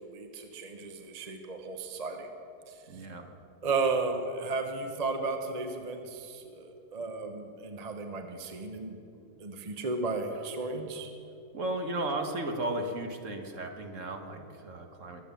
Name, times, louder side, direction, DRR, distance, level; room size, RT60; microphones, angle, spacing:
voice 1, 0.0-2.3 3.6-9.0 9.4-11.1, right 3 dB, 30° right, 5 dB, 1.0 m, -34 dB
voice 2, 2.9-3.2 11.5-15.2, right 1 dB, 55° right, 4 dB, 1.7 m, -35 dB
22.0 x 8.4 x 7.1 m, 2.7 s
omnidirectional pair, 1.6 m